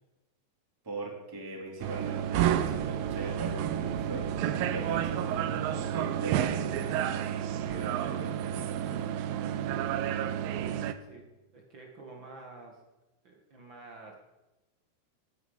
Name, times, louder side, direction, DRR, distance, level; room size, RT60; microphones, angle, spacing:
voice 1, 0.8-9.1, right 2 dB, 5° right, -2 dB, 2.5 m, -41 dB
sound 1, 1.8-10.9, right 10 dB, 80° right, 2.1 m, -30 dB
voice 2, 11.5-12.8 13.2-14.2, right 3 dB, 50° right, 0 dB, 1.4 m, -49 dB
18.0 x 9.9 x 5.6 m, 1.0 s
omnidirectional pair, 5.0 m